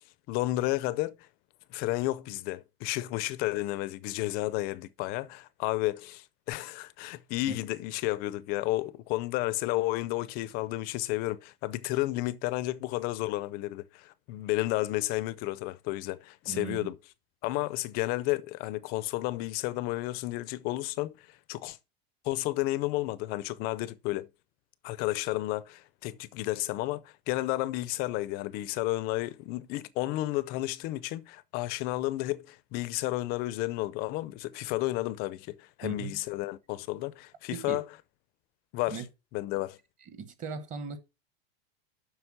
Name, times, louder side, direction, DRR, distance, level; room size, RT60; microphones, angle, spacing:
voice 1, 0.3-1.3 1.7-17.0 17.4-21.8 22.2-24.3 24.8-37.8 38.7-39.0 39.3-39.8, left 18 dB, 30° left, 0.5 m, -32 dB
voice 2, 16.5-16.9 35.8-36.2 37.5-37.8 38.9-39.1 40.0-41.0, right 5 dB, 25° right, 1.0 m, -38 dB
7.9 x 6.0 x 6.0 m
supercardioid pair, 170°, 31 cm